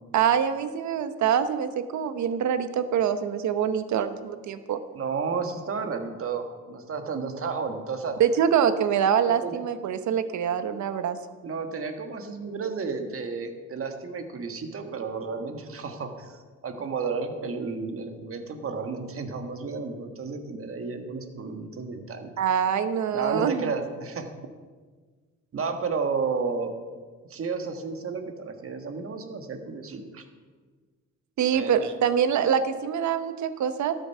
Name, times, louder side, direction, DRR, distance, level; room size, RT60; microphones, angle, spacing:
voice 1, 0.1-4.8 8.2-11.2 22.4-23.7 31.4-33.9, right 8 dB, 70° right, 11 dB, 1.0 m, -25 dB
voice 2, 4.9-8.2 9.2-9.6 11.4-22.3 23.1-24.3 25.5-26.7 27.3-30.2 31.5-31.8, right 4 dB, 45° right, 6 dB, 1.6 m, -32 dB
13.0 x 9.3 x 5.5 m, 1.5 s
cardioid pair, 90°, 30 cm